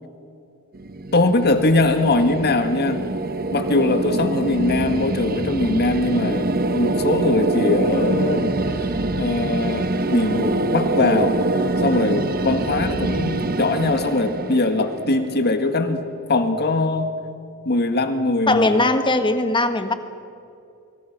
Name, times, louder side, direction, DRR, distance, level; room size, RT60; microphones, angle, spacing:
sound 1, 0.7-15.8, right 2 dB, 40° right, 1.0 m, -24 dB
voice 1, 1.1-3.0 3.5-8.5 8.8-8.9 9.2-11.4 11.8-16.0 16.3-17.1 17.7-18.9, left 2 dB, 45° left, 7 dB, 1.8 m, -21 dB
voice 2, 18.5-19.9, left 2 dB, 20° left, 8 dB, 1.4 m, -19 dB
24.5 x 24.0 x 6.1 m, 2.5 s
head